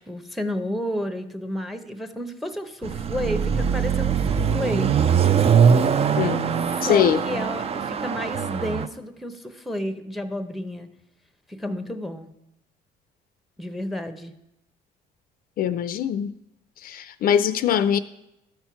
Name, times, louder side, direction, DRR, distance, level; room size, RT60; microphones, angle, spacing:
voice 1, 0.0-4.9 6.8-10.9 11.5-12.3 13.6-14.3, left 1 dB, ahead, 9 dB, 0.8 m, -31 dB
Car passing by / Accelerating revving vroom, 2.8-8.9, right 7 dB, 35° right, 0.5 m, -22 dB
voice 2, 6.8-7.2 15.6-16.3 16.8-18.0, left 9 dB, 60° left, 13 dB, 0.4 m, -22 dB
12.5 x 4.5 x 5.8 m, 0.85 s
cardioid pair, 110°, 17 cm